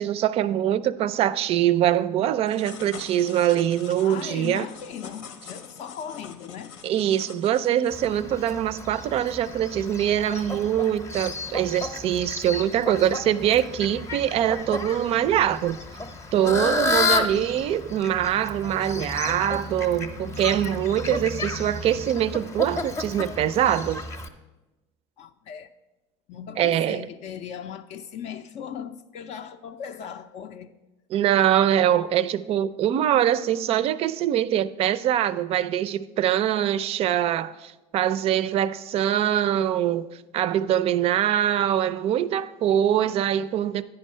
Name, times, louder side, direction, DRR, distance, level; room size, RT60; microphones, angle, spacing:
voice 1, 0.0-4.7 6.8-15.8 16.3-24.0 26.6-27.0 31.1-43.8, right 11 dB, 45° right, 0.4 m, -23 dB
sound 1, 2.5-8.1, left 6 dB, 85° left, 0.9 m, -44 dB
voice 2, 4.0-6.7 16.4-16.9 25.2-25.7 26.3-30.7, left 8 dB, 50° left, 0.4 m, -38 dB
Fowl, 7.9-24.3, left 3 dB, 20° left, 0.7 m, -32 dB
9.4 x 5.4 x 5.5 m
supercardioid pair, 110°, 14 cm